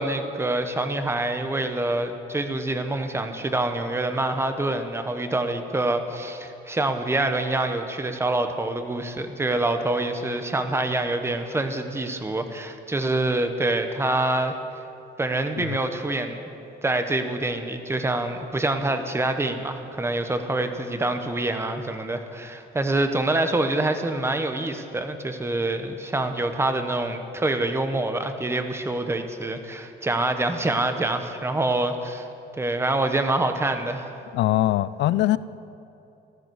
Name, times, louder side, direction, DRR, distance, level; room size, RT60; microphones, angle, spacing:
voice 1, 0.0-14.5 15.2-16.4 16.8-32.3 32.6-34.1, right 2 dB, 15° right, 7 dB, 1.1 m, -26 dB
voice 2, 34.3-35.4, left 14 dB, 75° left, 17 dB, 0.5 m, -22 dB
15.5 x 13.5 x 6.4 m, 2.8 s
cardioid pair, 135°, 18 cm